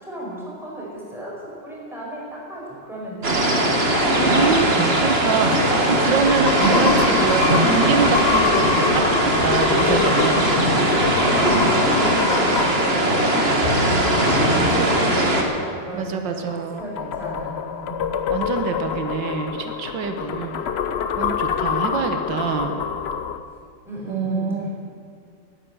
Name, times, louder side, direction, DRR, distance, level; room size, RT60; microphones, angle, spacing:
voice 1, 0.0-3.3 11.2-16.5 16.8-17.9 23.8-24.9, right 1 dB, ahead, -6 dB, 5.0 m, -34 dB
sound 1, 3.2-15.4, right 1 dB, 35° right, 1.8 m, -19 dB
sound 2, 3.9-14.5 16.5-23.4, left 7 dB, 75° left, 0.5 m, -27 dB
voice 2, 4.3-10.6 14.6-15.0 15.9-16.8 18.3-20.6 21.2-22.8 24.1-24.7, right 5 dB, 85° right, 6 dB, 1.7 m, -25 dB
13.5 x 10.5 x 9.4 m, 2.2 s
omnidirectional pair, 2.0 m